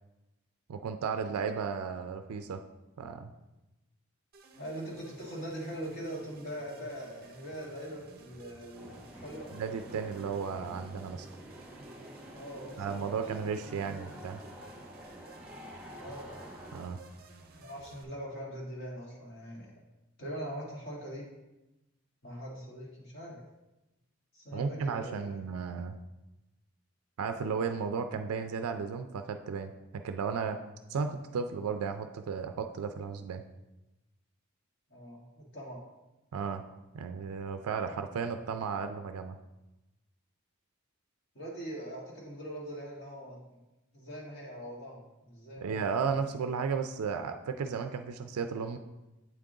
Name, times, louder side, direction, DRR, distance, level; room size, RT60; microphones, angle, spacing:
voice 1, 0.7-2.6 3.0-3.3 9.5-11.3 12.8-14.4 16.7-17.0 24.5-26.0 27.2-30.6 30.9-33.4 36.3-36.6 36.9-39.4 45.6-48.8, right 5 dB, 85° right, 7 dB, 0.4 m, -34 dB
sound 1, 4.3-18.0, right 3 dB, 40° right, 0.6 m, -55 dB
voice 2, 4.6-9.5 12.3-14.5 16.0-16.3 17.5-19.7 20.2-21.2 22.2-23.4 24.3-25.4 34.9-35.8 41.4-43.6 43.9-45.9, equal, 45° left, -4 dB, 1.6 m, -42 dB
sound 2, 8.7-16.8, equal, 5° right, 0.9 m, -48 dB
8.1 x 3.7 x 3.8 m, 0.99 s
head